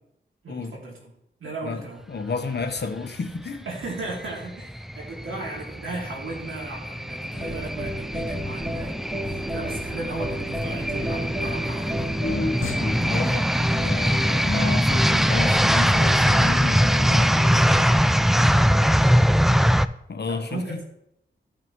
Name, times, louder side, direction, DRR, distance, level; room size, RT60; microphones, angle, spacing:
voice 1, 0.4-0.9 1.4-2.0 3.7-12.1 18.9-19.3 20.3-20.8, right 2 dB, 90° right, -2 dB, 2.8 m, -36 dB
voice 2, 1.4-3.7 12.2-13.5 13.8-17.9 20.1-20.8, left 3 dB, 55° left, 6 dB, 1.2 m, -31 dB
sound 1, 4.1-19.9, equal, ahead, 0.4 m, -22 dB
sound 2, 7.3-18.9, right 1 dB, 20° right, 3.1 m, -34 dB
sound 3, 9.3-17.2, left 5 dB, 85° left, 0.9 m, -43 dB
15.5 x 5.8 x 3.2 m, 0.78 s
cardioid pair, 65°, 20 cm